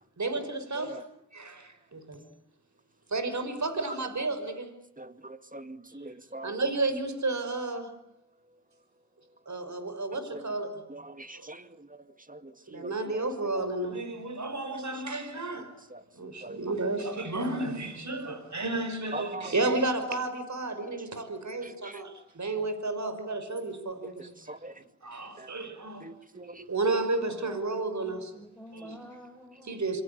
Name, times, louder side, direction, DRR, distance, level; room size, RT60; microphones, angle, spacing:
voice 1, 0.2-1.0 1.3-2.2 3.1-4.7 6.4-7.9 9.5-10.9 11.3-11.5 12.7-15.7 16.1-24.6 25.0-26.1 26.6-28.3 28.7-29.0 29.6-30.0, right 2 dB, 65° right, 5.4 m, -32 dB
voice 2, 5.0-6.6 10.3-10.4 10.9-12.0 12.3-13.2 13.5-13.7 15.9-16.0 16.4-16.6 19.1-19.5 21.6-22.0 24.5-24.8 25.4-25.5 26.0-26.6, right 2 dB, 25° right, 2.3 m, -43 dB
voice 3, 27.3-29.8, equal, ahead, 6.0 m, -48 dB
28.5 x 23.0 x 8.4 m
cardioid pair, 45°, 31 cm